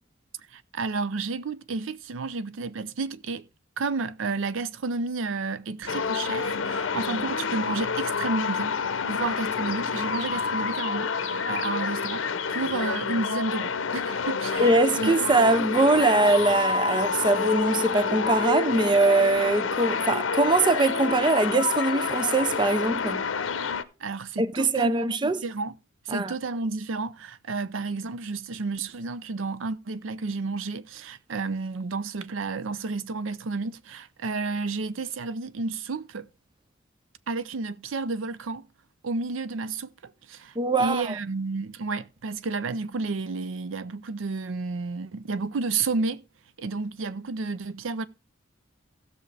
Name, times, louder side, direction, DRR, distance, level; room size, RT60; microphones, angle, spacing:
voice 1, 0.5-3.5 3.8-8.8 9.1-15.1 24.0-25.7 26.1-36.3 37.3-38.6 39.0-46.2 46.6-48.1, right 3 dB, 85° right, 0.5 m, -31 dB
sound 1, 5.9-23.8, left 5 dB, 80° left, 0.7 m, -28 dB
voice 2, 14.6-23.3 24.4-25.4 26.1-26.3 40.6-41.2, right 3 dB, 25° right, 0.5 m, -22 dB
16.0 x 6.4 x 3.3 m
head